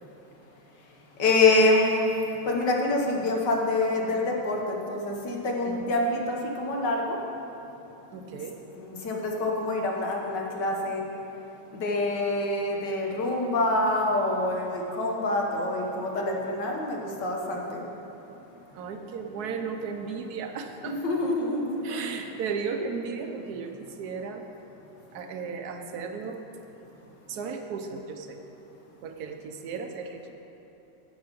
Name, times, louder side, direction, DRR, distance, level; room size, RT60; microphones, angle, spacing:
voice 1, 1.2-2.1 2.5-7.2 8.8-11.0 11.7-17.9 20.8-22.2, left 2 dB, 75° left, 0 dB, 1.9 m, -26 dB
voice 2, 8.1-8.6 18.7-21.0 21.8-24.4 25.1-26.4 27.3-28.4 29.0-30.3, right 5 dB, 65° right, 5 dB, 1.3 m, -35 dB
10.5 x 8.2 x 5.2 m, 3.0 s
omnidirectional pair, 1.9 m